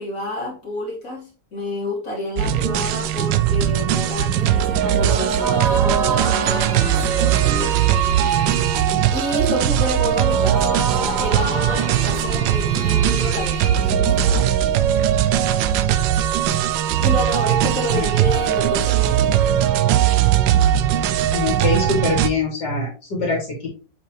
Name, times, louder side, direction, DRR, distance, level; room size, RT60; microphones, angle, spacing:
voice 1, 0.0-7.8 9.1-14.6 17.0-19.4, left 1 dB, 45° left, -4 dB, 3.0 m, -29 dB
sound 1, 2.4-22.3, right 10 dB, 80° right, 1.3 m, -19 dB
sound 2, 4.8-14.6, right 3 dB, 50° right, 1.7 m, -29 dB
voice 2, 21.3-23.7, left 4 dB, 65° left, -3 dB, 3.2 m, -23 dB
7.4 x 4.9 x 3.2 m, 0.33 s
omnidirectional pair, 2.0 m